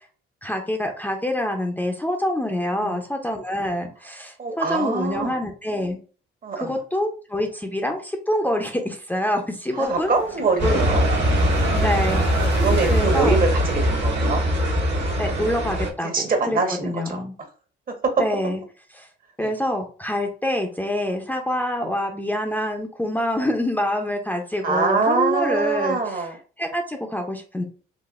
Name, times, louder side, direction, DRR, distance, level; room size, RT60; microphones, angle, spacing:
voice 1, 0.4-6.0 6.6-10.1 10.6-10.9 11.3-11.5 11.8-12.6 12.9-13.4 15.2-17.3 18.2-18.6 19.0-19.1 19.4-26.3 26.6-27.6, left 1 dB, 10° left, 2 dB, 0.6 m, -26 dB
voice 2, 4.4-5.3 6.4-6.8 9.7-11.0 11.6-12.0 12.5-14.5 14.8-15.1 16.0-17.2 17.9-18.2 19.4-19.5 24.6-26.4, right 4 dB, 45° right, 4 dB, 1.1 m, -24 dB
sound 1, 9.8-15.5, left 3 dB, 70° left, 1.5 m, -40 dB
sound 2, 10.6-15.9, equal, 60° right, 1.4 m, -21 dB
4.0 x 2.5 x 2.4 m, 0.38 s
cardioid pair, 90°, 20 cm